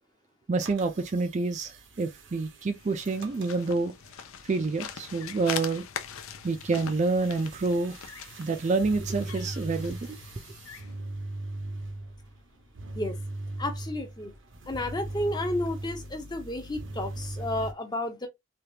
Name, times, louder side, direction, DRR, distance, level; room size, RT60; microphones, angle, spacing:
voice 1, 0.5-3.9 4.5-5.8 6.4-7.9 8.4-10.2, right 3 dB, 35° right, 0.4 m, -28 dB
sound 1, 0.5-17.7, right 1 dB, 60° right, 0.7 m, -40 dB
sound 2, 2.7-11.0, left 8 dB, 75° left, 0.5 m, -42 dB
voice 2, 13.6-14.3 14.7-18.3, left 1 dB, 20° left, 0.6 m, -32 dB
3.4 x 2.3 x 2.8 m
head